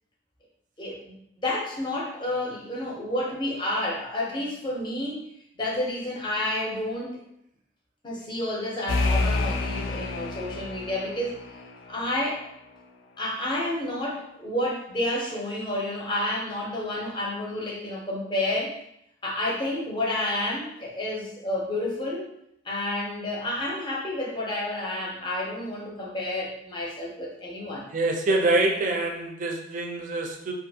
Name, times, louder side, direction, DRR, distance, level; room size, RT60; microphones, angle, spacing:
voice 1, 0.8-1.1 1.4-5.2 5.6-7.2 8.0-11.3 11.9-12.4 13.2-18.8 19.2-22.3 22.6-27.9, left 1 dB, 25° left, -3 dB, 0.6 m, -30 dB
sound 1, 8.9-12.4, left 3 dB, 70° left, 0.4 m, -29 dB
voice 2, 27.9-30.5, right 2 dB, 40° right, 2 dB, 0.4 m, -25 dB
2.6 x 2.4 x 2.7 m, 0.77 s
head